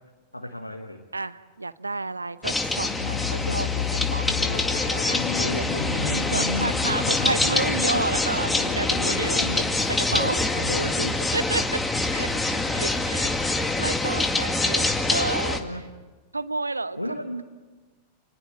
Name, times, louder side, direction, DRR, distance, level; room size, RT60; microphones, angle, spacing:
voice 1, 0.3-1.0 5.7-6.8 9.1-9.7 10.1-11.4 12.2-12.6 15.6-15.9 17.0-17.4, left 1 dB, 85° left, 5 dB, 1.4 m, -33 dB
voice 2, 1.1-4.6 5.0-9.6 9.9-10.4 11.3-11.8 12.1-15.6 16.3-17.2, right 3 dB, 80° right, 15 dB, 0.8 m, -31 dB
sound 1, 2.4-15.6, left 2 dB, 10° left, 2.0 m, -25 dB
sound 2, 2.8-9.6, left 11 dB, 55° left, 1.7 m, -32 dB
29.0 x 21.0 x 7.8 m, 1.3 s
figure-of-eight pair, 90°, 0 cm